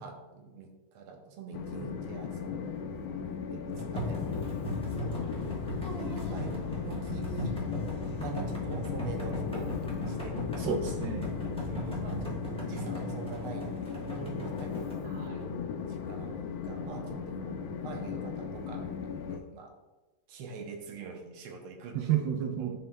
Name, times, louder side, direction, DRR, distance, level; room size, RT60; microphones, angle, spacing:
voice 1, 0.0-2.9 3.5-4.4 5.0-5.1 6.0-7.6 8.2-10.6 11.7-15.2 15.8-18.9 19.3-19.7 20.3-22.3 22.6-22.8, right 4 dB, 85° right, 3 dB, 1.7 m, -44 dB
Train, 1.5-19.4, left 6 dB, 80° left, 1.4 m, -37 dB
sound 1, 3.7-15.0, right 2 dB, 5° left, 0.5 m, -40 dB
sound 2, 4.0-12.4, left 5 dB, 65° left, 1.1 m, -39 dB
voice 2, 10.6-11.5 15.0-15.5 21.9-22.8, right 8 dB, 70° right, 3 dB, 1.2 m, -32 dB
10.0 x 4.5 x 2.2 m, 1.1 s
omnidirectional pair, 2.3 m